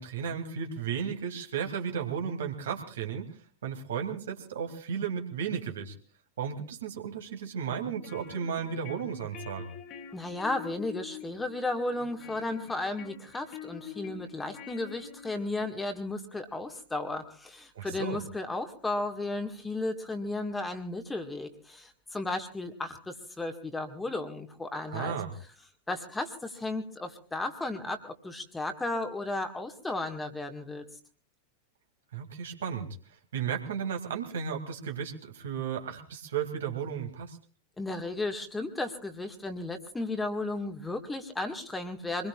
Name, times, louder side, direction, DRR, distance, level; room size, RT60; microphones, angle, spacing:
voice 1, 0.0-3.3 3.6-5.9 6.4-9.7 17.7-18.2 24.9-25.3 32.1-32.9 33.3-37.4, right 7 dB, 65° right, 4 dB, 2.5 m, -34 dB
sound 1, 7.8-15.8, left 9 dB, 35° left, 1.5 m, -46 dB
voice 2, 10.1-25.1 25.9-30.8 37.8-42.3, left 2 dB, 10° left, 6 dB, 1.8 m, -34 dB
25.0 x 21.0 x 2.4 m, 0.40 s
figure-of-eight pair, 90°, 0 cm